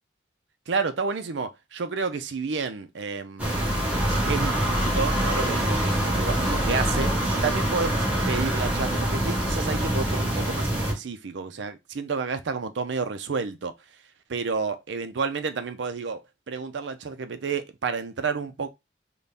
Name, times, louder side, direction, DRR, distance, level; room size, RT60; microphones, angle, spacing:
voice 1, 0.7-3.6 4.3-7.1 7.4-14.0 14.3-18.7, right 5 dB, 85° right, 0.5 m, -30 dB
sound 1, 3.4-10.9, right 1 dB, 10° right, 1.2 m, -25 dB
3.9 x 2.3 x 3.4 m
head